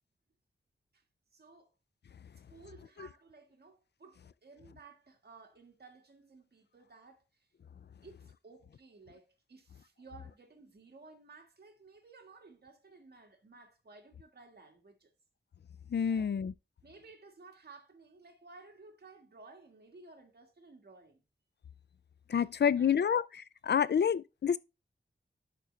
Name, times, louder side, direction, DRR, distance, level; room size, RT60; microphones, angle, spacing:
voice 1, 1.3-1.7 2.5-7.5 8.0-15.1 16.1-16.4 16.8-21.2 22.6-23.1 23.8-23.9, right 3 dB, 60° right, 1.7 m, -56 dB
voice 2, 15.9-16.5 22.3-23.2 23.6-24.6, left 7 dB, 65° left, 0.5 m, -28 dB
11.5 x 4.3 x 3.2 m
wide cardioid pair, 75°, 19 cm